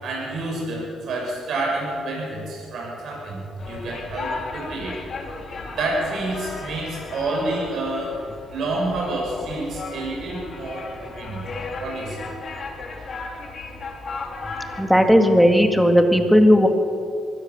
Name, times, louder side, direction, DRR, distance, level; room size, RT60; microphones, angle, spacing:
voice 1, 0.0-5.0 5.7-8.2 8.5-11.4 11.8-12.3 14.7-14.9, right 2 dB, 70° right, -2 dB, 6.8 m, -28 dB
sound 1, 3.6-14.8, left 3 dB, 50° left, 3.9 m, -35 dB
voice 2, 14.8-16.7, equal, ahead, 4 dB, 2.3 m, -15 dB
23.5 x 17.0 x 7.2 m, 2.5 s
cardioid pair, 90°, 0 cm